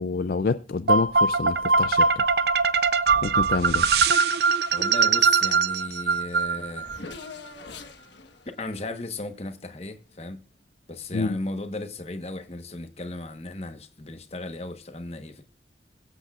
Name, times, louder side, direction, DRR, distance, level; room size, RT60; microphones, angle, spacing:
voice 1, 0.0-2.2 3.2-3.9 11.1-11.4, left 4 dB, 55° left, 0.4 m, -27 dB
sound 1, 0.9-7.0, right 5 dB, 60° right, 0.5 m, -22 dB
voice 2, 4.7-6.9 8.5-10.4 10.9-15.4, left 2 dB, 35° left, 1.1 m, -36 dB
Race car auto racing / Accelerating revving vroom, 5.7-5.8 6.0-10.0, left 4 dB, 75° left, 1.3 m, -45 dB
22.5 x 8.1 x 2.4 m
head